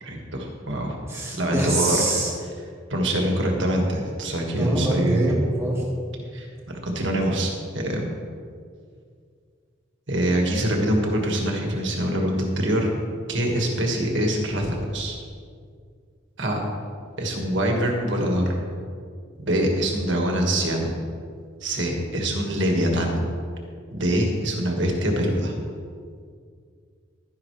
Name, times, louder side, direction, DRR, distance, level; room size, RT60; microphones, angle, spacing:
voice 1, 0.0-0.9 1.4-2.0 2.9-5.3 6.3-8.1 10.1-12.9 13.3-15.2 16.4-16.6 17.2-18.5 19.4-20.9 21.6-23.2 23.9-25.5, right 1 dB, 65° right, 1 dB, 1.8 m, -24 dB
voice 2, 1.1-2.3 4.5-5.8, right 1 dB, 15° right, -4 dB, 2.1 m, -24 dB
12.0 x 10.5 x 3.3 m, 2.1 s
head